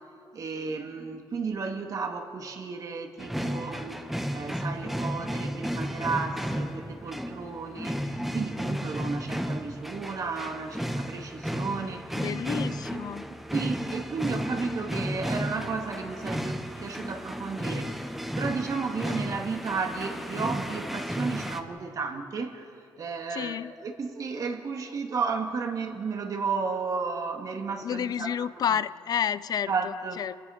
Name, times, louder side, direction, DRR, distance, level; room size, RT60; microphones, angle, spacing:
voice 1, 0.3-12.2 13.3-18.0 18.4-22.7 23.0-28.6 29.7-30.2, right 4 dB, 45° right, 4 dB, 2.2 m, -33 dB
sound 1, 3.2-21.6, equal, 5° right, 1.2 m, -33 dB
voice 2, 12.1-13.3 23.3-23.7 27.8-30.3, left 8 dB, 55° left, 16 dB, 0.5 m, -30 dB
29.5 x 20.0 x 5.9 m, 2.5 s
cardioid pair, 135°, 8 cm